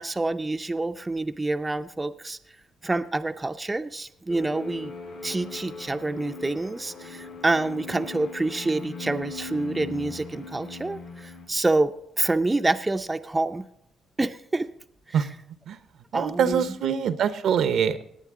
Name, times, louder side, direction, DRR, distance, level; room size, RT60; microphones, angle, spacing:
voice 1, 0.0-2.4 2.8-4.9 5.2-13.7 14.2-14.7 15.1-15.3 16.1-16.7, right 2 dB, 15° right, 7 dB, 0.6 m, -27 dB
sound 1, 4.3-11.5, left 4 dB, 75° left, 4.4 m, -39 dB
voice 2, 16.1-18.0, right 7 dB, 70° right, 12 dB, 0.8 m, -24 dB
18.5 x 8.7 x 3.7 m, 0.76 s
cardioid pair, 90°, 0 cm